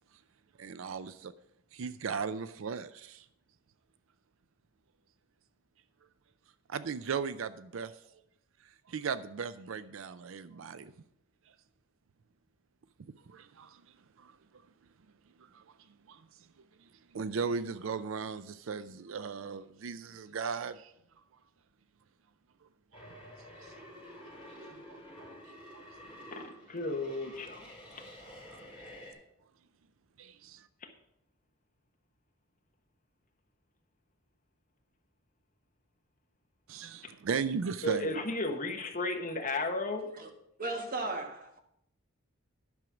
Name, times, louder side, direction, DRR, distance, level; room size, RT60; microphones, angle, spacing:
voice 1, 0.6-1.3 1.7-3.2 6.7-7.9 8.9-10.9 13.3-13.8 14.2-14.3 15.5-15.6 16.1-16.2 17.1-20.9 23.6-23.7 24.9-25.0 25.7-25.9 30.2-30.6 36.7-38.1, right 5 dB, 70° right, 0.4 m, -37 dB
sound 1, 22.9-29.1, equal, 5° right, 5.1 m, -50 dB
voice 2, 26.3-28.0 30.8-30.9 37.8-40.1, left 2 dB, 40° left, 1.2 m, -34 dB
voice 3, 40.6-41.6, right 2 dB, 40° right, 1.4 m, -35 dB
10.5 x 6.4 x 5.9 m
head